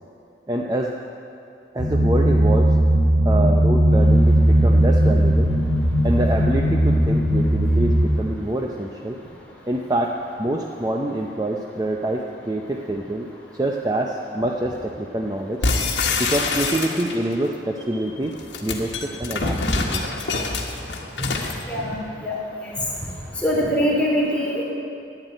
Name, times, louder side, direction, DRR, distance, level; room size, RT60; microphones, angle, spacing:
voice 1, 0.5-0.9 1.7-2.8 3.2-5.5 6.0-9.2 9.7-13.3 13.6-15.6 16.2-20.0, right 1 dB, 20° right, 1 dB, 0.6 m, -26 dB
sound 1, 1.8-8.0, right 1 dB, 55° right, 3.1 m, -17 dB
sound 2, 15.6-17.3 18.3-21.6, left 3 dB, 75° left, 1.5 m, -25 dB
voice 2, 23.4-24.6, equal, 5° left, -5 dB, 2.8 m, -22 dB
11.5 x 9.4 x 9.0 m, 2.6 s
head